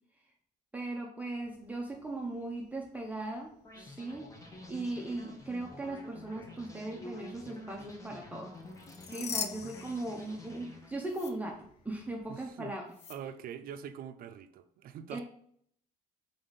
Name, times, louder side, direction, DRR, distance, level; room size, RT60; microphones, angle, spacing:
voice 1, 0.7-4.3 4.7-8.5 9.1-12.8 15.1-15.2, right 2 dB, 10° right, 0.6 m, -38 dB
sound 1, 1.4-12.5, equal, 70° left, 2.0 m, -59 dB
sound 2, 3.6-11.3, left 2 dB, 20° left, 1.0 m, -50 dB
sound 3, 8.7-10.7 11.1-11.3 12.9-13.2, left 6 dB, 40° left, 0.5 m, -40 dB
voice 2, 12.3-12.7 13.1-15.2, right 8 dB, 60° right, 0.5 m, -44 dB
3.7 x 3.5 x 4.0 m
cardioid pair, 110°, 17 cm